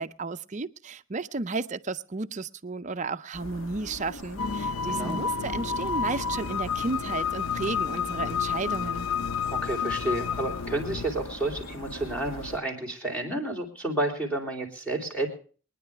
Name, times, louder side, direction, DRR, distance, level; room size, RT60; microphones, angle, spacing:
voice 1, 0.0-9.1, right 3 dB, 35° right, 0.5 m, -33 dB
sound 1, 3.3-12.6, left 1 dB, 60° left, 1.3 m, -41 dB
sound 2, 4.4-11.1, left 6 dB, 85° left, 0.5 m, -30 dB
voice 2, 4.9-5.2 9.4-15.3, right 2 dB, 5° left, 3.3 m, -31 dB
23.5 x 10.0 x 3.5 m
head